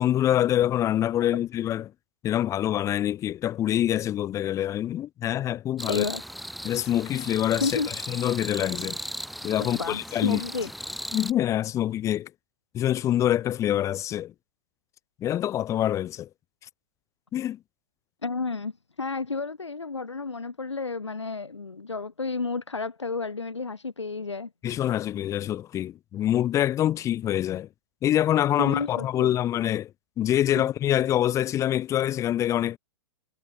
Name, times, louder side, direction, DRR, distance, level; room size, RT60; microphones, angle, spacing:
voice 1, 0.0-1.9 2.2-6.1 6.6-7.8 8.1-9.0 9.4-10.4 11.1-12.3 12.7-14.3 15.2-16.3 17.3-17.6 24.6-27.7 28.0-29.9 30.2-32.8, left 12 dB, 20° left, 0.9 m, -25 dB
sound 1, 5.8-11.3, equal, ahead, 2.0 m, -37 dB
voice 2, 5.9-6.2 7.6-7.9 9.7-10.7 18.2-18.7 19.0-24.5 28.6-29.4, left 4 dB, 75° left, 4.5 m, -31 dB
figure-of-eight pair, 105°, 15 cm